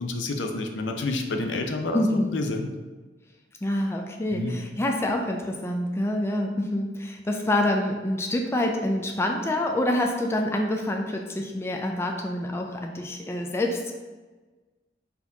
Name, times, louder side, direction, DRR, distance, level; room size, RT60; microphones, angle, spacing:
voice 1, 0.0-2.7 4.3-4.5, left 2 dB, 70° left, 4 dB, 0.5 m, -29 dB
voice 2, 1.9-2.4 3.6-13.9, left 1 dB, 15° left, 2 dB, 0.3 m, -26 dB
4.1 x 2.9 x 3.9 m, 1.3 s
head